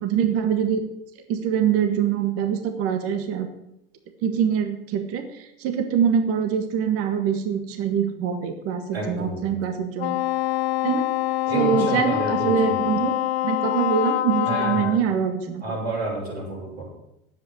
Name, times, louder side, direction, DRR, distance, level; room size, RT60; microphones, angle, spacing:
voice 1, 0.0-0.8 1.3-3.5 4.2-10.2 10.8-11.1 11.5-13.1 13.4-15.8, right 8 dB, 50° right, 7 dB, 1.6 m, -24 dB
voice 2, 8.9-9.5 11.5-12.8 14.4-15.0 15.6-16.8, right 2 dB, 85° right, -6 dB, 5.9 m, -30 dB
Wind instrument woodwind instrument, 10.0-15.0, left 16 dB, 75° left, 0.7 m, -25 dB
9.9 x 8.2 x 8.0 m, 0.81 s
hypercardioid pair, 100°, 31 cm